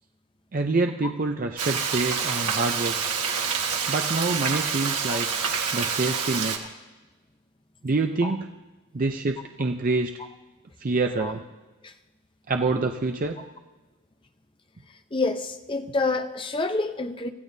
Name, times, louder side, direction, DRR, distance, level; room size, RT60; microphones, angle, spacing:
voice 1, 0.5-2.9 3.9-5.3 5.7-6.6 7.8-8.5 8.9-10.1 10.8-11.4 12.5-13.4, right 3 dB, 40° right, 5 dB, 0.5 m, -26 dB
Frying (food), 1.6-6.6, right 6 dB, 90° right, 1.6 m, -27 dB
voice 2, 15.1-17.3, left 3 dB, 20° left, 7 dB, 0.7 m, -28 dB
25.0 x 15.0 x 2.7 m, 1.2 s
head